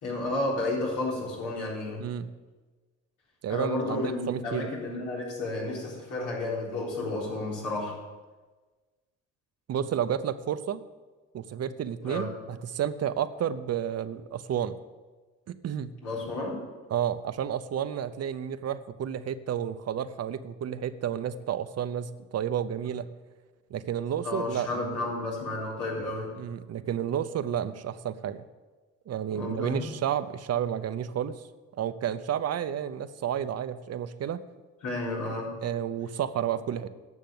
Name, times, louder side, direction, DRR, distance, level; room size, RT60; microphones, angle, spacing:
voice 1, 0.0-2.0 3.5-7.9 12.0-12.3 16.0-16.6 24.2-26.3 29.3-29.8 34.8-35.5, left 2 dB, 90° left, -4 dB, 4.0 m, -32 dB
voice 2, 3.4-4.7 9.7-10.8 11.3-14.7 15.5-15.9 16.9-23.1 23.7-25.1 26.4-28.4 29.1-31.4 31.8-34.4 35.6-36.9, right 9 dB, 55° right, 13 dB, 0.7 m, -31 dB
10.5 x 6.6 x 7.9 m, 1.3 s
cardioid pair, 90°, 30 cm